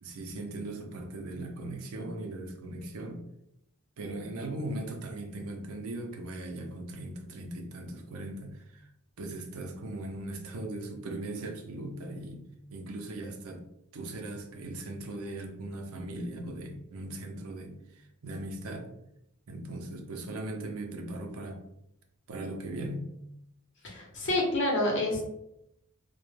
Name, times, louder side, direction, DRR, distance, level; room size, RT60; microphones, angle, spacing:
voice 1, 0.0-3.2 4.0-8.9 9.2-12.4 12.7-13.6 13.9-18.9 19.5-21.6 22.3-23.1, right 1 dB, 80° right, 4 dB, 0.5 m, -39 dB
voice 2, 23.8-25.2, left 1 dB, 55° left, -1 dB, 0.7 m, -28 dB
2.1 x 2.1 x 3.1 m, 0.81 s
head